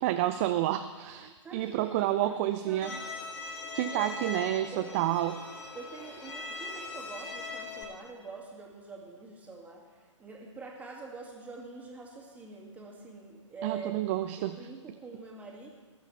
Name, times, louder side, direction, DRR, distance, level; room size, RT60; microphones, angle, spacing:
voice 1, 0.0-3.1 3.7-5.4 13.6-14.7, right 13 dB, 25° right, 9 dB, 0.4 m, -30 dB
voice 2, 1.4-2.3 2.7-3.0 3.8-4.3 4.7-5.1 5.7-9.8 10.2-14.1 14.4-15.7, right 4 dB, 10° right, -1 dB, 2.2 m, -45 dB
Bowed string instrument, 2.8-7.8, left 3 dB, 20° left, 2.8 m, -40 dB
19.5 x 12.0 x 3.4 m, 1.4 s
figure-of-eight pair, 125°, 16 cm